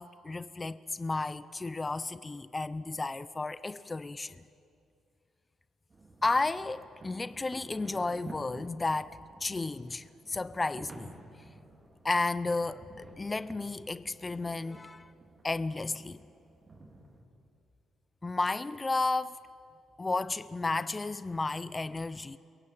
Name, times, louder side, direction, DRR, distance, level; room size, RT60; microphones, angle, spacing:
voice 1, 0.0-4.4 6.2-11.1 12.0-15.1 15.4-16.2 18.2-19.4 20.0-22.4, left 3 dB, 25° left, 0.7 m, -33 dB
sound 1, 5.9-17.2, right 2 dB, 30° right, 4.3 m, -52 dB
29.0 x 23.0 x 7.9 m
cardioid pair, 90°, 0 cm